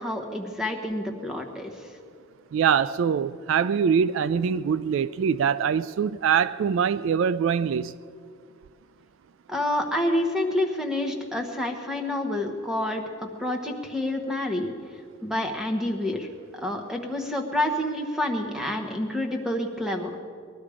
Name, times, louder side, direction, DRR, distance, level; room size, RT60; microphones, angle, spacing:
voice 1, 0.0-1.9 9.5-14.7 15.2-16.3 16.5-20.1, left 1 dB, ahead, 1.2 m, -28 dB
voice 2, 2.5-7.9, right 7 dB, 65° right, 0.3 m, -23 dB
20.5 x 12.0 x 5.0 m
head